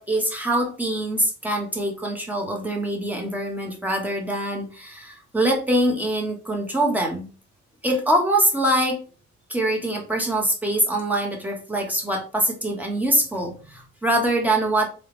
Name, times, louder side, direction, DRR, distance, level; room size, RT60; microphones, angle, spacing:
voice 1, 0.0-7.3 7.8-9.0 9.5-14.9, right 1 dB, 5° right, 1 dB, 1.1 m, -24 dB
3.5 x 2.4 x 3.0 m, 0.36 s
cardioid pair, 90°, 30 cm